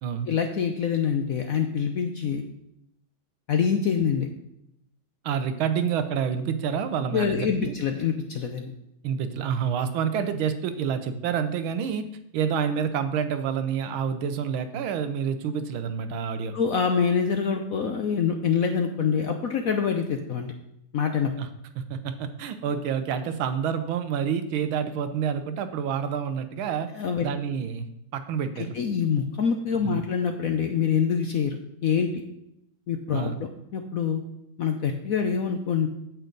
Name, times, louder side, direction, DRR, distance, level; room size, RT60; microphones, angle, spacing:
voice 1, 0.3-2.4 3.5-4.3 7.1-8.7 16.5-20.5 20.9-21.3 26.9-27.3 28.6-32.1 32.9-34.2 34.6-35.9, left 6 dB, 65° left, 4 dB, 0.8 m, -25 dB
voice 2, 5.2-7.7 9.0-12.1 12.3-16.5 21.4-21.5 21.8-26.9 27.2-27.9 28.1-28.7 29.8-30.0 33.1-33.4, right 7 dB, 85° right, 9 dB, 1.6 m, -28 dB
8.9 x 8.2 x 3.9 m, 0.78 s
omnidirectional pair, 2.2 m